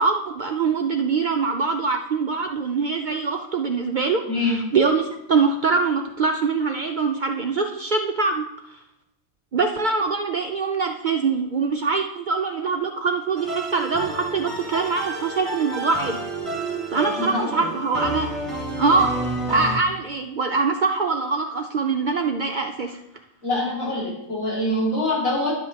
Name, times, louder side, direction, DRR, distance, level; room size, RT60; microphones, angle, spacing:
voice 1, 0.0-8.8 9.5-16.2 16.9-18.3 18.8-19.1 19.5-23.0, right 4 dB, 65° right, 3 dB, 0.4 m, -23 dB
voice 2, 4.3-4.6 17.1-17.5 23.4-25.5, left 1 dB, 75° left, -7 dB, 2.9 m, -24 dB
sound 1, 13.3-19.8, right 2 dB, 10° right, 1.7 m, -30 dB
11.0 x 7.7 x 2.8 m, 0.83 s
omnidirectional pair, 1.4 m